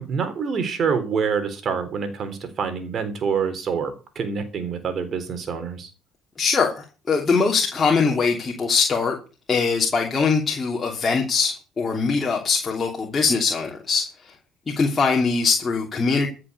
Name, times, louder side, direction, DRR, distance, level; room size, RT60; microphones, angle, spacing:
voice 1, 0.0-5.9, right 6 dB, 50° right, 10 dB, 3.7 m, -26 dB
voice 2, 6.4-9.2 9.5-14.3 14.7-16.3, left 5 dB, 30° left, 0 dB, 3.0 m, -22 dB
14.5 x 6.8 x 6.8 m, 0.35 s
supercardioid pair, 70°, 0 cm